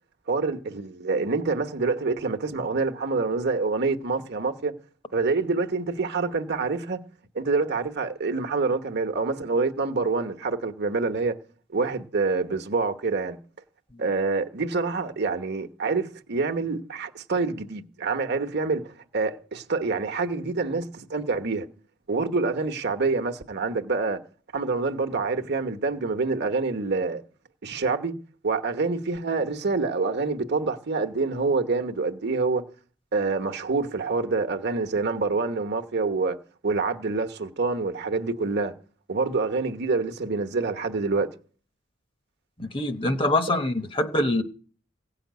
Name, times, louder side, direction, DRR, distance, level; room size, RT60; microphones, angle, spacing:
voice 1, 0.3-4.7 5.1-7.0 7.3-11.4 11.7-13.4 14.0-21.7 22.1-24.2 24.5-27.2 27.6-28.1 28.4-32.6 33.1-36.4 36.6-38.7 39.1-41.3, right 3 dB, 55° right, 1.0 m, -26 dB
voice 2, 42.6-44.4, left 1 dB, 25° left, 0.9 m, -24 dB
16.5 x 5.8 x 9.3 m
head